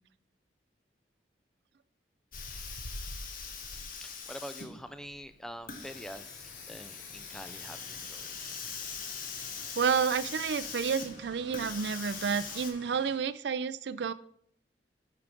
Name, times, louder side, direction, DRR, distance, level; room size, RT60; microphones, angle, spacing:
Hiss, 2.3-12.7, left 5 dB, 50° left, 1.1 m, -42 dB
voice 1, 4.0-8.3, equal, 5° left, 11 dB, 0.3 m, -45 dB
sound 1, 5.8-13.2, left 3 dB, 80° left, 1.6 m, -54 dB
sound 2, 7.3-12.9, equal, 35° left, 2.8 m, -58 dB
voice 2, 9.8-14.1, right 6 dB, 70° right, 16 dB, 0.4 m, -30 dB
8.3 x 4.8 x 5.0 m, 0.67 s
head